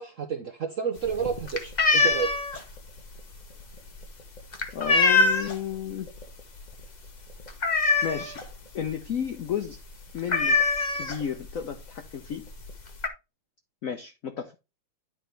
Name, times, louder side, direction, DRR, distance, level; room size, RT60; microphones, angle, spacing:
voice 1, 0.0-2.3, right 6 dB, 60° right, 0.8 m, -30 dB
sound 1, 1.0-5.7 6.1-6.4 6.7-6.8 7.1-8.5 8.9-9.0 9.2-9.5 9.7-9.8 10.3-11.5 12.3-12.4 12.6-13.1, left 4 dB, 40° left, 0.6 m, -24 dB
voice 2, 4.7-6.1 8.0-8.4 8.7-9.8 10.1-10.6 10.9-12.5 13.8-14.5, left 8 dB, 85° left, 0.7 m, -32 dB
10.5 x 4.9 x 3.3 m
omnidirectional pair, 2.4 m